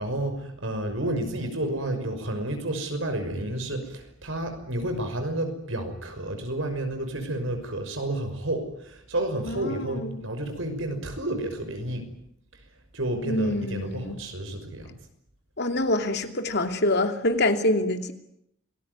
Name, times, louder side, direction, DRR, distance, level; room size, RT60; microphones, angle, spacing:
voice 1, 0.0-12.1 12.9-15.1, right 1 dB, 70° right, 6 dB, 5.9 m, -31 dB
voice 2, 9.5-10.2 13.3-14.2 15.6-18.1, left 1 dB, 55° left, 6 dB, 2.8 m, -26 dB
27.5 x 20.0 x 9.6 m, 0.76 s
head